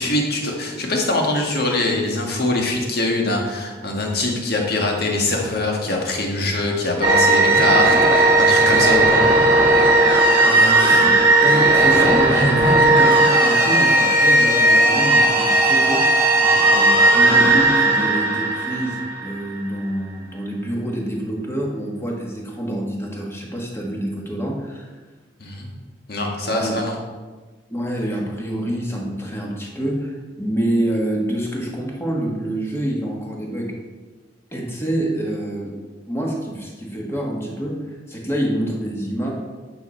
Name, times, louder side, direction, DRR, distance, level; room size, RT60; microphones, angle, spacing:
voice 1, 0.0-9.2 16.4-16.7 25.4-25.7 26.1-27.0, left 2 dB, 55° left, 0 dB, 1.7 m, -23 dB
sound 1, 7.0-19.5, right 2 dB, 10° right, 2.2 m, -15 dB
voice 2, 10.4-16.1 16.6-24.9 26.5-26.8 27.7-33.7 34.5-35.8 36.1-39.3, right 1 dB, 15° left, -1 dB, 1.7 m, -26 dB
9.6 x 6.6 x 4.4 m, 1.3 s
head